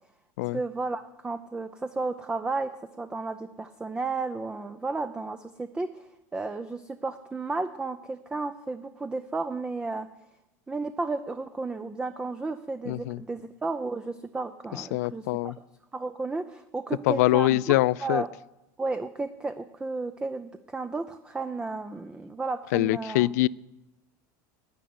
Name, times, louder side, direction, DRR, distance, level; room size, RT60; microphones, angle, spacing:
voice 1, 0.5-2.7 3.0-6.1 6.3-10.1 10.7-15.5 15.9-18.3 18.8-23.3, right 3 dB, 10° right, 11 dB, 0.5 m, -33 dB
voice 2, 12.9-13.2 14.9-15.6 17.1-18.2 22.7-23.5, left 18 dB, 80° left, 23 dB, 0.4 m, -24 dB
10.0 x 9.0 x 9.5 m, 0.92 s
supercardioid pair, 135°, 9 cm